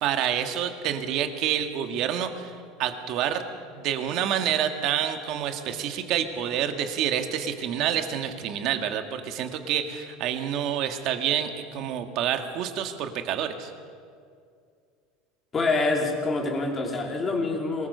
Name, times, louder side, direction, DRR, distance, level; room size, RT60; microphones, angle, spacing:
voice 1, 0.0-2.5 2.8-3.4 3.7-13.7, right 9 dB, 50° right, 7 dB, 1.9 m, -28 dB
voice 2, 15.5-17.9, left 3 dB, 20° left, 1 dB, 3.4 m, -26 dB
23.5 x 20.0 x 6.8 m, 2.2 s
cardioid pair, 155°, 0 cm